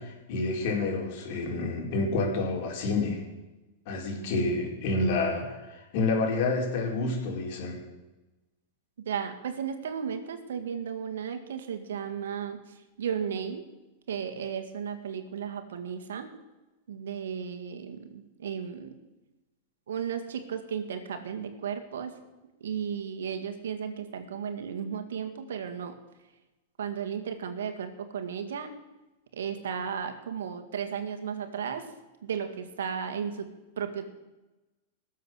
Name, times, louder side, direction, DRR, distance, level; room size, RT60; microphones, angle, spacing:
voice 1, 0.0-3.2 3.9-7.8, left 3 dB, 60° left, 0 dB, 4.5 m, -29 dB
voice 2, 9.1-12.6 13.0-13.6 14.1-16.3 16.9-19.0 19.9-22.2 22.6-26.0 26.8-28.7 29.3-31.9 32.2-33.5 33.8-34.1, right 7 dB, 80° right, 6 dB, 1.8 m, -34 dB
18.5 x 7.6 x 6.4 m, 1.1 s
hypercardioid pair, 115°, 0 cm